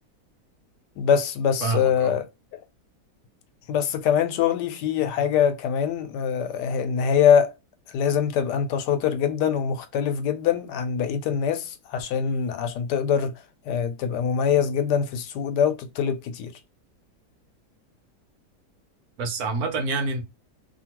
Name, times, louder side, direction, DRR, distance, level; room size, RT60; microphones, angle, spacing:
voice 1, 1.0-2.2 3.7-7.5 7.9-13.3 13.7-16.5, left 8 dB, 80° left, 1.2 m, -23 dB
voice 2, 1.6-2.2 19.2-20.2, right 3 dB, 65° right, 1.2 m, -27 dB
2.8 x 2.6 x 2.9 m
omnidirectional pair, 1.8 m